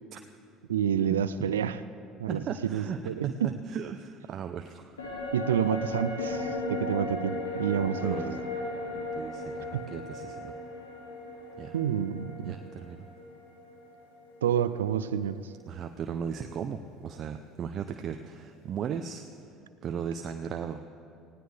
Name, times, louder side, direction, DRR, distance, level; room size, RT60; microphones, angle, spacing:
voice 1, 0.7-1.8 2.2-3.5 5.3-8.2 9.7-9.8 11.7-12.6 14.4-15.5, right 9 dB, 85° right, 13 dB, 0.4 m, -29 dB
voice 2, 2.3-5.3 7.8-8.4 9.2-10.5 11.6-11.7 12.4-13.1 15.7-19.2 19.8-20.8, right 7 dB, 45° right, 6 dB, 0.7 m, -37 dB
sound 1, 5.0-14.5 14.8-14.9, left 2 dB, 90° left, 2.1 m, -36 dB
19.5 x 16.5 x 3.4 m, 2.5 s
hypercardioid pair, 65°, 0 cm